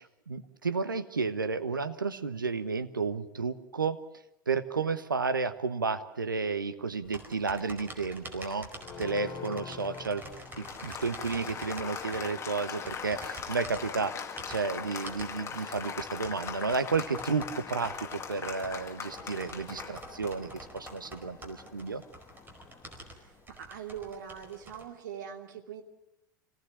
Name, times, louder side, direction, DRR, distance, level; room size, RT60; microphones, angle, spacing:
voice 1, 0.0-4.0 4.5-8.7 9.0-10.2 10.6-22.0, right 4 dB, 85° right, 11 dB, 1.3 m, -32 dB
sound 1, 7.0-24.8, right 1 dB, 20° right, 4.7 m, -48 dB
Applause, 8.8-23.2, left 6 dB, 25° left, 2.2 m, -41 dB
voice 2, 23.1-25.8, right 8 dB, 65° right, 5 dB, 2.8 m, -42 dB
26.5 x 18.5 x 7.4 m, 0.85 s
figure-of-eight pair, 80°, 11 cm